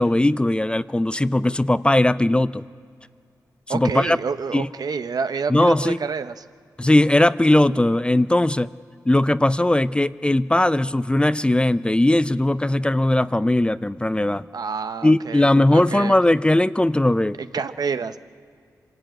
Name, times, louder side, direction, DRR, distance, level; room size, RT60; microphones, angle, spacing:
voice 1, 0.0-2.6 3.7-4.2 4.5-4.7 5.5-6.0 6.8-8.7 9.1-14.4 15.0-17.4, left 1 dB, 15° left, 15 dB, 0.4 m, -19 dB
voice 2, 3.7-6.4 14.5-15.5 15.7-16.2 17.5-18.2, right 5 dB, 65° right, 11 dB, 0.7 m, -28 dB
24.5 x 12.0 x 9.1 m, 2.1 s
cardioid pair, 55°, 7 cm